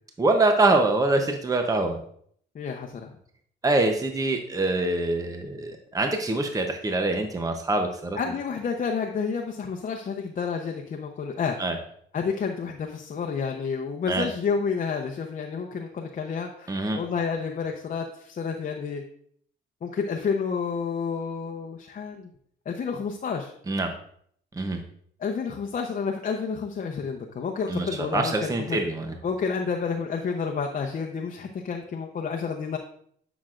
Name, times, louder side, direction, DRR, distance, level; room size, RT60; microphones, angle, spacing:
voice 1, 0.2-2.0 3.6-8.2 11.6-11.8 14.1-14.3 16.7-17.0 23.7-23.9 24.6-24.8 27.7-29.1, right 2 dB, 15° right, 5 dB, 0.8 m, -24 dB
voice 2, 2.5-3.1 8.2-11.6 12.1-19.0 19.8-22.3 22.7-23.5 25.2-28.8 29.2-32.8, left 5 dB, 45° left, 2 dB, 0.8 m, -30 dB
9.5 x 5.9 x 2.5 m, 0.63 s
cardioid pair, 90°, 20 cm